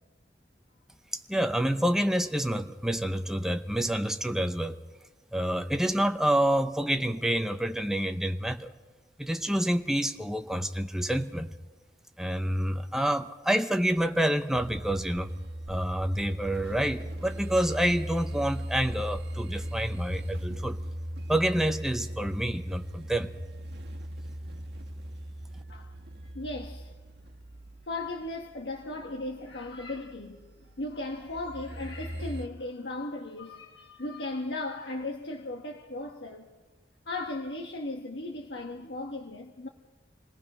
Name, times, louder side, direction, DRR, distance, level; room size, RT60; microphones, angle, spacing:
voice 1, 1.3-4.8 5.3-8.7 9.2-11.5 12.2-15.3 15.7-20.8 21.3-23.3, right 1 dB, 5° right, 0.8 m, -28 dB
sound 1, 14.5-32.5, equal, 70° right, 1.4 m, -39 dB
voice 2, 26.3-26.9 27.9-36.5 37.1-39.7, left 2 dB, 85° left, 1.3 m, -37 dB
27.5 x 18.5 x 5.5 m
head